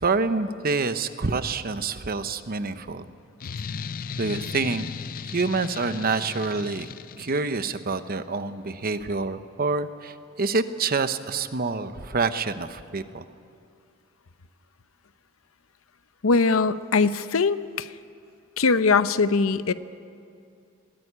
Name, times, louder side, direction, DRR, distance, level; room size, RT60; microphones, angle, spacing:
voice 1, 0.0-3.1 4.2-4.9 5.2-6.9 7.2-13.3, right 4 dB, 45° right, 11 dB, 0.9 m, -27 dB
sound 1, 3.4-7.9, left 6 dB, 45° left, 0.4 m, -36 dB
voice 2, 16.2-17.9 18.6-19.7, left 4 dB, 80° left, 13 dB, 0.7 m, -21 dB
21.0 x 16.0 x 9.9 m, 2.4 s
head